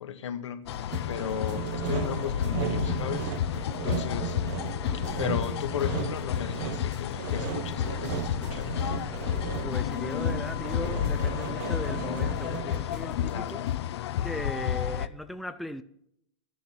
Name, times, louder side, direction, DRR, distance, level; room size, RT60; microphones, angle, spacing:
voice 1, 0.0-3.3 3.8-4.4 4.9-8.7 13.3-13.6, left 8 dB, 85° left, 1.6 m, -35 dB
sound 1, 0.7-15.1, left 10 dB, 65° left, 0.7 m, -31 dB
sound 2, 0.7-13.7, right 4 dB, 80° right, 5.0 m, -47 dB
Sawing, 0.9-13.0, right 10 dB, 45° right, 1.0 m, -36 dB
voice 2, 9.6-13.7 14.2-15.8, left 1 dB, ahead, 0.4 m, -38 dB
13.5 x 10.5 x 6.0 m
supercardioid pair, 160°, 15 cm